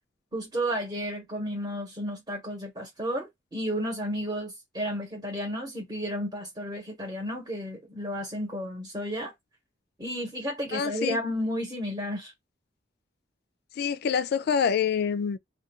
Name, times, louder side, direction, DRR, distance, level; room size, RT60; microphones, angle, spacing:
voice 1, 0.3-9.3 10.0-12.3, equal, 20° right, 0.9 m, -32 dB
voice 2, 10.7-11.2 13.8-15.4, left 7 dB, 55° left, 0.3 m, -26 dB
2.3 x 2.2 x 2.9 m
head